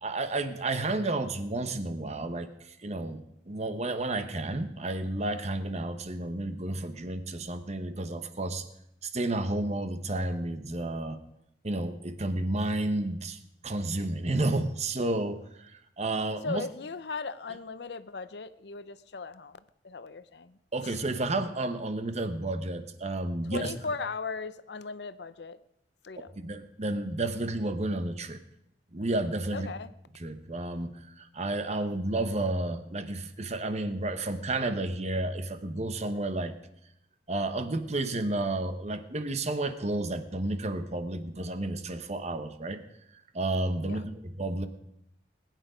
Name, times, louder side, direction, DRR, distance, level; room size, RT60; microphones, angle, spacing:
voice 1, 0.0-8.6 9.0-11.2 11.6-16.6 20.7-23.8 26.3-28.4 28.9-29.7 30.1-36.5 37.3-42.8 43.3-44.7, right 2 dB, 40° right, 10 dB, 1.0 m, -31 dB
voice 2, 16.4-19.5 19.8-20.5 21.0-21.1 23.5-25.6 26.0-26.3 29.5-29.9 43.9-44.0, left 4 dB, 65° left, 14 dB, 0.6 m, -37 dB
20.0 x 9.3 x 5.1 m, 0.80 s
head